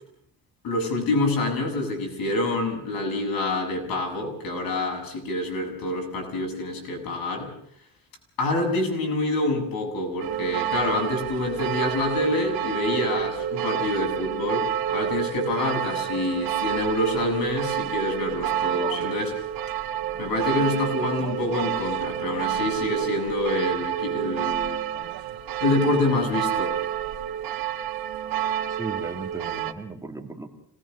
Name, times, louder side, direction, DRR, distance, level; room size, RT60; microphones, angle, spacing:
voice 1, 0.6-7.5 8.4-19.4 20.2-24.8 25.6-26.8, left 2 dB, 75° left, 1 dB, 7.7 m, -27 dB
sound 1, 10.2-29.7, right 11 dB, 80° right, 1.7 m, -29 dB
voice 2, 28.7-30.5, right 3 dB, 10° right, 2 dB, 2.3 m, -36 dB
26.5 x 19.5 x 6.5 m, 0.65 s
cardioid pair, 145°, 36 cm